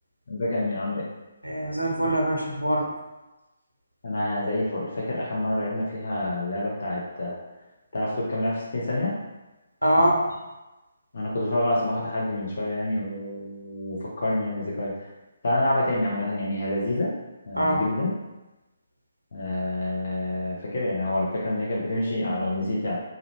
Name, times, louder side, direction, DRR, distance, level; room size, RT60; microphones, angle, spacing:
voice 1, 0.3-1.1 2.0-2.2 4.0-7.4 7.9-9.2 11.1-15.1 15.4-17.1 17.5-18.1 19.3-23.0, left 1 dB, 50° left, -5 dB, 0.5 m, -27 dB
voice 2, 1.4-2.9 9.8-10.2 17.5-17.8, right 1 dB, 85° right, -1 dB, 0.6 m, -23 dB
2.4 x 2.0 x 2.9 m, 1.1 s
figure-of-eight pair, 140°, 0 cm